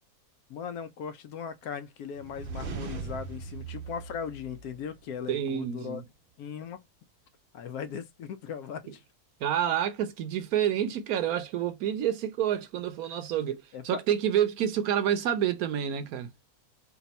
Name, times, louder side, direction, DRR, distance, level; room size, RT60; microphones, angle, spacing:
voice 1, 0.5-6.0 6.4-6.8 7.5-9.0 13.7-14.0, left 7 dB, 80° left, 1.1 m, -38 dB
sound 1, 2.2-5.1, right 4 dB, 55° right, 0.6 m, -39 dB
voice 2, 5.3-6.0 9.4-16.3, right 10 dB, 80° right, 1.1 m, -28 dB
3.4 x 2.4 x 4.1 m
omnidirectional pair, 1.6 m